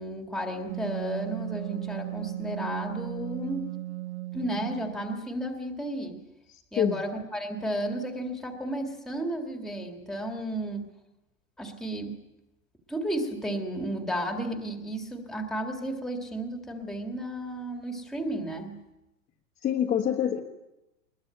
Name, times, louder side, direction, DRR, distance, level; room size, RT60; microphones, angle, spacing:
voice 1, 0.0-3.7 4.3-6.2 6.7-10.8 11.6-12.2 12.9-18.8, right 1 dB, ahead, 4 dB, 1.9 m, -33 dB
Wind instrument woodwind instrument, 0.7-5.1, right 15 dB, 50° right, 0.9 m, -36 dB
voice 2, 19.6-20.4, left 9 dB, 15° left, -1 dB, 1.4 m, -25 dB
21.5 x 21.0 x 9.0 m, 0.95 s
supercardioid pair, 165°, 43 cm